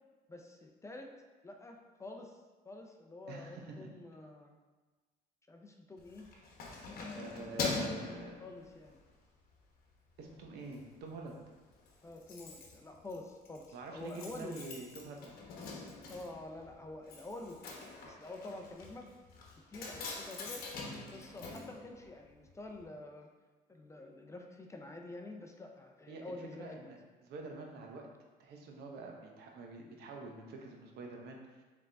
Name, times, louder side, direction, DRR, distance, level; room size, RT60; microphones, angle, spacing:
voice 1, 0.3-1.1 1.4-2.4 2.6-4.6 5.5-6.2 7.0-7.8 8.4-9.0 12.0-14.6 16.1-19.1 19.7-20.6 21.1-23.3 23.7-26.9, left 2 dB, 15° left, 2 dB, 0.4 m, -48 dB
voice 2, 3.3-3.9 7.1-8.4 10.2-11.4 13.7-15.3 26.1-28.1 28.4-31.6, right 3 dB, 75° right, 1 dB, 0.7 m, -47 dB
Keys jangling, 6.0-9.1 9.5-9.8 10.1-10.8 11.1-11.2 11.4-11.5 11.7-22.5 22.8-22.9, left 3 dB, 60° left, 0.9 m, -44 dB
3.8 x 3.4 x 3.3 m, 1.3 s
cardioid pair, 110°, 17 cm